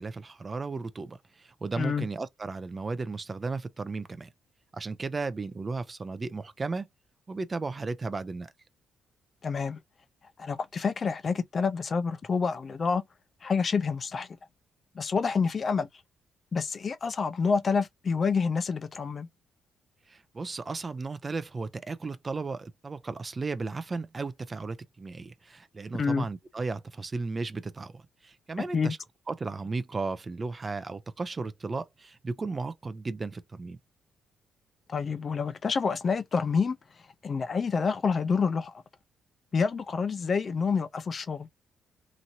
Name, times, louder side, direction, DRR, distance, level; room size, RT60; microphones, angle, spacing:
voice 1, 0.0-4.3 4.7-6.9 7.3-8.5 20.1-29.0 29.3-33.8, right 3 dB, 30° right, 0.4 m, -35 dB
voice 2, 1.8-2.1 9.4-9.8 10.4-13.0 13.4-14.3 15.0-15.9 16.5-19.3 26.0-26.3 28.6-28.9 34.9-36.8 37.2-38.7 39.5-41.5, left 5 dB, 40° left, 0.4 m, -28 dB
2.9 x 2.6 x 2.6 m
cardioid pair, 90°, 0 cm